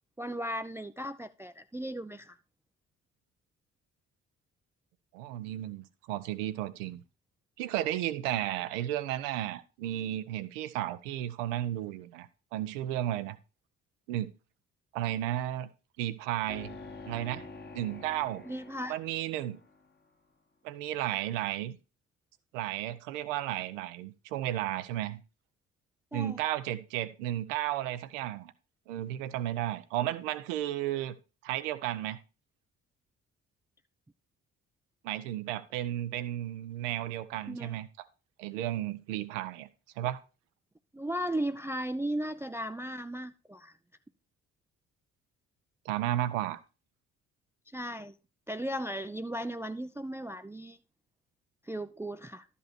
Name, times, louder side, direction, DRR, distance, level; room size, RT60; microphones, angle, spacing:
voice 1, 0.2-2.4 18.5-19.0 26.1-26.4 37.5-37.7 40.9-43.7 47.7-48.1 48.5-50.8 51.7-52.5, right 1 dB, 5° right, 0.4 m, -36 dB
voice 2, 5.1-7.0 7.6-13.4 14.1-14.3 14.9-15.7 16.0-16.8 17.1-17.5 17.7-18.4 18.9-19.6 20.6-21.8 22.5-25.2 26.1-28.5 28.9-31.1 31.4-32.2 35.0-37.9 38.4-39.7 40.0-40.2 45.8-46.6, right 13 dB, 80° right, 0.7 m, -33 dB
sound 1, 16.5-19.9, left 3 dB, 25° left, 1.2 m, -47 dB
11.5 x 5.5 x 4.3 m
hypercardioid pair, 45°, 37 cm